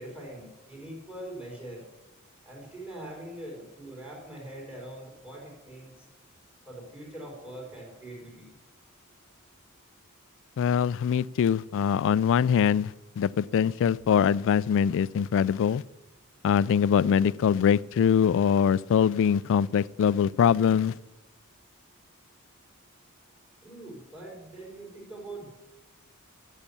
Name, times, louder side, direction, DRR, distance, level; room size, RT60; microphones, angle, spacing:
voice 1, 0.0-1.8 2.4-5.9 6.7-8.5 23.6-25.5, right 1 dB, 5° right, 4.9 m, -42 dB
voice 2, 10.6-15.8 16.4-20.9, left 7 dB, 60° left, 0.3 m, -23 dB
12.0 x 7.3 x 7.2 m
head